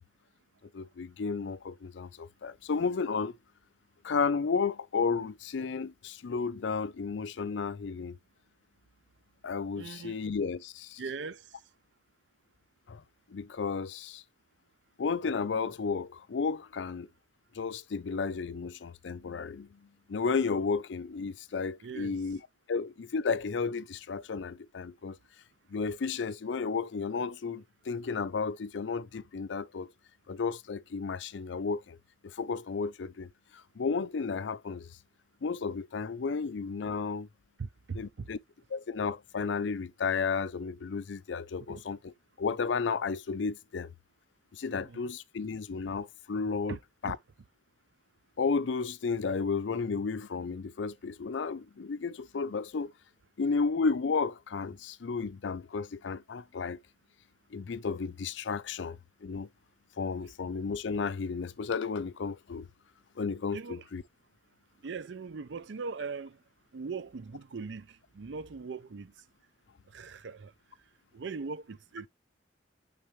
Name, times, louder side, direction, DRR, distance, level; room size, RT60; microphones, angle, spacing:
voice 1, 0.7-3.3 4.0-8.2 9.4-11.0 12.9-13.0 13.3-14.2 15.0-17.1 17.5-19.8 20.1-22.4 22.7-25.2 25.7-29.9 30.3-32.0 32.2-34.9 35.4-37.3 37.9-38.4 38.7-42.1 42.4-43.9 44.5-46.8 47.0-47.2 48.4-52.9 53.4-56.8 57.5-59.5 60.0-62.7 63.2-64.0, left 5 dB, 80° left, 0.5 m, -33 dB
voice 2, 9.7-10.2 11.0-11.5 21.8-22.2 37.6-38.3 41.7-41.8 44.7-45.0 46.7-47.1 63.5-63.8 64.8-66.4 66.7-69.1 69.9-70.5 71.1-72.1, right 4 dB, 75° right, 0.5 m, -40 dB
8.8 x 3.9 x 3.2 m
head